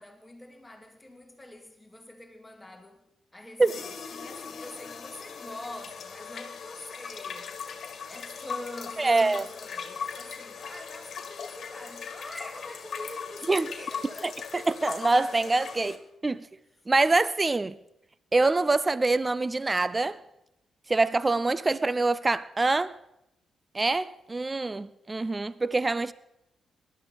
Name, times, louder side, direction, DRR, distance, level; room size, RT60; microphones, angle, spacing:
voice 1, 0.0-3.0 3.3-7.6 8.1-14.7, left 1 dB, 15° left, 2.2 m, -44 dB
sound 1, 3.6-16.0, left 6 dB, 60° left, 1.8 m, -39 dB
voice 2, 9.0-9.4 13.5-13.7 14.7-16.5 16.9-17.8 18.3-20.2 20.9-23.0 23.7-26.1, right 3 dB, 30° right, 0.5 m, -25 dB
19.0 x 12.0 x 4.0 m
supercardioid pair, 55°, 0 cm